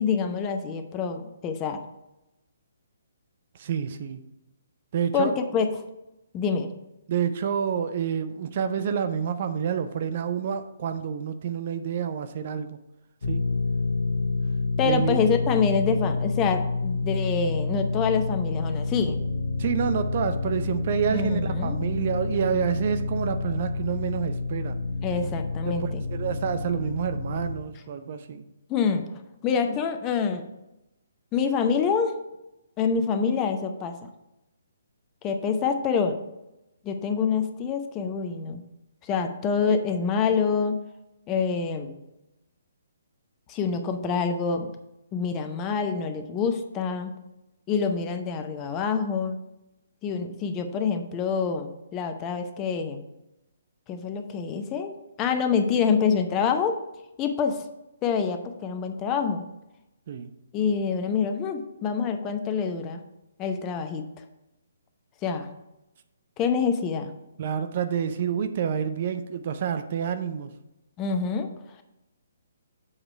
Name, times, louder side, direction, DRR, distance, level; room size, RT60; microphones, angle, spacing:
voice 1, 0.0-1.8 5.1-5.7 6.3-6.7 14.8-19.2 21.1-21.8 25.0-26.0 28.7-29.0 29.4-30.4 31.3-32.1 32.8-33.9 35.2-36.2 36.8-38.6 39.0-40.8 41.3-42.0 43.5-44.7 45.1-47.1 47.7-49.4 50.0-53.0 53.9-56.8 57.2-57.7 58.0-59.4 60.5-63.0 63.4-64.2 65.2-65.5 66.4-67.1 71.0-71.5, left 6 dB, 25° left, 7 dB, 0.7 m, -26 dB
voice 2, 3.6-4.2 4.9-5.3 7.1-12.8 13.3-13.4 14.8-15.2 19.6-24.8 25.6-28.4 60.1-60.3 67.4-70.5, right 7 dB, 45° right, 9 dB, 0.6 m, -28 dB
sound 1, 13.2-27.6, left 3 dB, 60° left, 1.3 m, -28 dB
7.3 x 4.9 x 4.6 m, 0.93 s
figure-of-eight pair, 135°, 0 cm